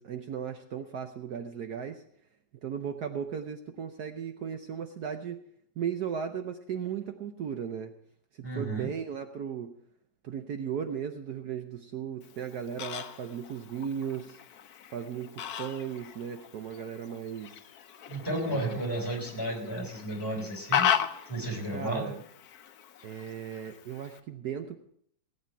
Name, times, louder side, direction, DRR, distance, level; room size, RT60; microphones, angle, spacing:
voice 1, 0.0-2.0 2.6-5.4 5.8-7.9 8.5-9.7 10.2-14.4 14.9-17.5 18.4-18.8 19.6-19.8 21.7-22.2 23.0-24.8, right 8 dB, 65° right, 7 dB, 1.3 m, -36 dB
voice 2, 8.4-8.9 18.1-20.9 21.3-22.1, right 1 dB, 10° left, -1 dB, 3.6 m, -33 dB
Fowl, 12.2-24.2, left 9 dB, 60° left, 1.1 m, -36 dB
18.0 x 9.5 x 4.5 m, 0.66 s
omnidirectional pair, 2.0 m